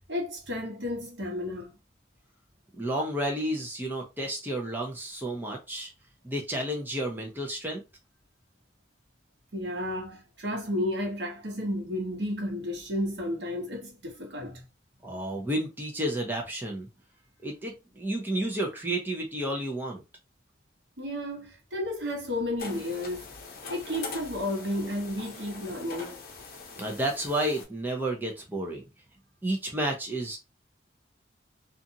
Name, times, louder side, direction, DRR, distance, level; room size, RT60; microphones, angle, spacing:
voice 1, 0.1-1.8 9.5-14.6 21.0-23.3 23.7-26.2, left 1 dB, 80° right, 1.0 m, -32 dB
voice 2, 2.8-5.9 6.2-7.8 15.0-16.9 17.4-20.0 26.8-28.8 29.4-30.4, right 1 dB, 10° right, 0.6 m, -31 dB
sound 1, 22.6-27.7, left 4 dB, 55° left, 0.8 m, -42 dB
2.5 x 2.4 x 2.7 m
head